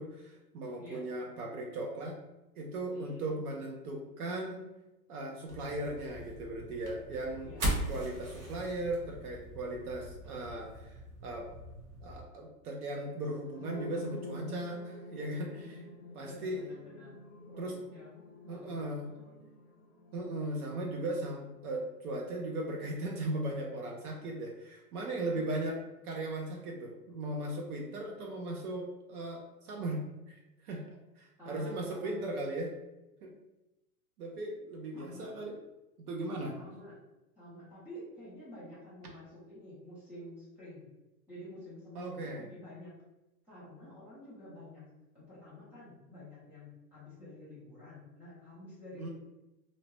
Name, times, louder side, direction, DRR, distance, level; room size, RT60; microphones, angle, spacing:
voice 1, 0.0-2.2 2.6-4.6 5.1-7.5 7.9-11.0 11.2-11.5 12.0-15.8 16.1-16.6 17.6-17.8 18.4-19.1 20.1-25.8 26.0-32.7 33.2-33.3 34.2-35.6 36.0-36.5 41.9-42.4 49.0-49.1, right 1 dB, 70° right, 1 dB, 0.7 m, -37 dB
voice 2, 2.9-3.3 7.4-7.7 15.5-17.2 17.5-18.1 18.5-19.4 19.6-19.7 31.4-32.2 34.9-35.3 36.6-37.0 37.4-40.9 41.3-43.0 43.5-49.1, left 1 dB, 5° right, -10 dB, 0.3 m, -50 dB
sound 1, 5.5-12.2, right 1 dB, 35° right, 0.9 m, -40 dB
sound 2, 13.4-21.3, equal, 55° left, 0.8 m, -47 dB
2.7 x 2.1 x 3.0 m, 0.99 s
hypercardioid pair, 130°, 47 cm